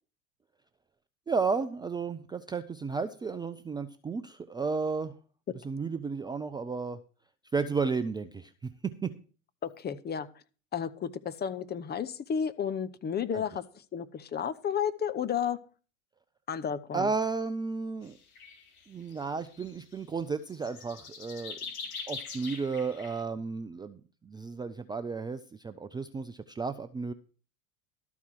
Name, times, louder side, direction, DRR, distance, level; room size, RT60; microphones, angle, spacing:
voice 1, 1.3-5.1 5.6-7.0 7.5-9.1 13.3-13.4 16.9-18.2 18.9-21.6 22.1-27.1, right 4 dB, 10° right, 9 dB, 0.5 m, -33 dB
voice 2, 9.6-10.3 10.7-13.6 13.9-15.6 16.5-17.1, left 7 dB, 25° left, 12 dB, 0.8 m, -32 dB
sound 1, 18.1-18.2 18.3-18.8 19.1-20.0 20.5-23.2, left 5 dB, 75° left, 3.6 m, -42 dB
13.0 x 4.8 x 7.3 m, 0.39 s
hypercardioid pair, 85°, 42 cm